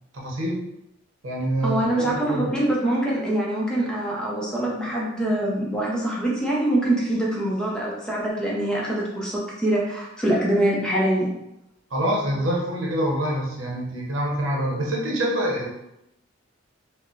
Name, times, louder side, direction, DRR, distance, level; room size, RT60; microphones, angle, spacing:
voice 1, 0.1-0.6 1.2-2.5 11.9-15.7, right 1 dB, 75° right, -2 dB, 0.8 m, -26 dB
voice 2, 1.6-11.3, right 1 dB, 5° left, -5 dB, 0.6 m, -24 dB
4.0 x 2.1 x 2.4 m, 0.84 s
head